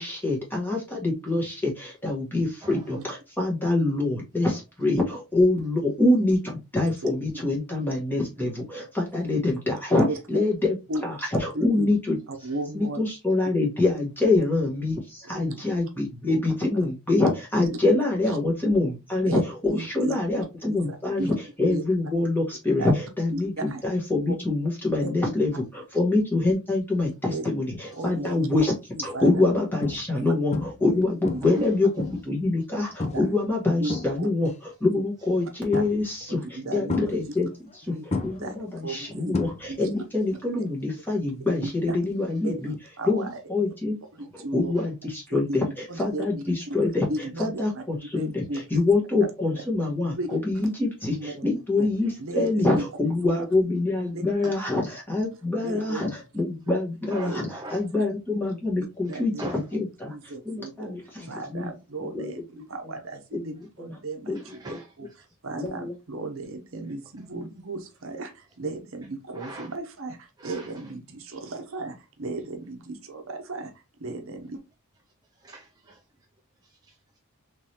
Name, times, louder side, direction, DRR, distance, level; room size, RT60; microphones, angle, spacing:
voice 1, 0.0-10.7 11.0-12.2 12.7-31.9 32.2-42.7 43.0-44.0 44.3-59.5 59.7-61.7 62.0-62.3 63.3-63.9 64.3-64.4 64.7-64.8 65.5-66.0, left 2 dB, 10° left, 1.4 m, -25 dB
voice 2, 2.6-3.0 12.4-12.6 27.9-28.0 31.4-31.7 32.7-33.0 44.7-44.9 54.4-54.5 57.1-57.9 59.1-59.7 64.3-65.4 69.3-69.7 70.4-70.9 71.4-71.6 75.3-76.1 76.6-77.2, right 2 dB, 15° right, 0.4 m, -43 dB
voice 3, 10.1-10.4 10.9-11.0 11.5-11.9 12.3-13.0 15.3-15.6 16.3-16.5 17.6-17.7 19.3-20.2 20.7-20.8 21.2-21.3 21.7-21.8 22.8-22.9 23.3-23.8 24.3-24.4 25.0-25.1 27.3-27.4 28.0-28.5 29.1-29.3 30.1-30.3 30.9-31.0 31.3-31.6 33.1-33.2 33.8-34.3 34.9-35.0 35.7-35.8 36.3-37.1 37.9-38.0 38.4-39.4 39.7-39.8 41.6-42.0 42.4-43.4 44.1-44.7 45.3-45.6 45.9-46.8 47.1-47.8 48.1-48.6 49.2-49.6 50.2-50.3 51.2-51.9 52.2-52.8 53.2-53.3 54.1-54.2 55.6-56.0 56.7-56.8 57.2-57.4 57.9-58.0 59.1-59.6 60.1-60.9 61.2-62.4 62.7-65.1 65.4-74.6, right 2 dB, 60° right, 0.8 m, -35 dB
sound 1, 28.2-28.5 29.1-29.2 29.8-30.2 30.5-30.9 31.2-32.4 33.0-33.3 33.7-34.5 35.7-36.2 36.9-37.8 38.1-40.0 40.2-40.7 42.7-42.8, left 3 dB, 30° left, 0.6 m, -32 dB
3.6 x 3.3 x 2.9 m
head